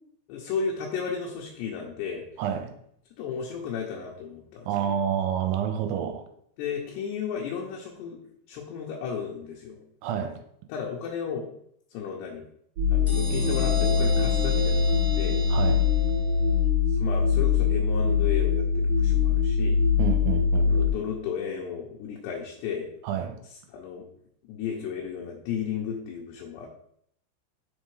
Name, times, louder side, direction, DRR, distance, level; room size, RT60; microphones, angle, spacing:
voice 1, 0.3-2.3 3.2-4.9 6.6-8.2 8.5-9.8 10.7-11.5 11.9-12.4 12.9-14.8 15.1-15.4 16.9-19.8 20.7-22.9 23.4-24.1 24.5-26.7, left 6 dB, 75° left, -2 dB, 2.7 m, -34 dB
voice 2, 2.4-2.7 4.7-6.2 10.0-10.4 15.5-15.8 20.0-20.7 23.0-23.4, right 9 dB, 85° right, 7 dB, 3.0 m, -28 dB
sound 1, 12.8-20.9, left 6 dB, 70° right, 1.6 m, -23 dB
sound 2, 13.1-16.6, left 1 dB, 40° left, 1.2 m, -34 dB
6.7 x 3.7 x 4.7 m, 0.69 s
omnidirectional pair, 5.3 m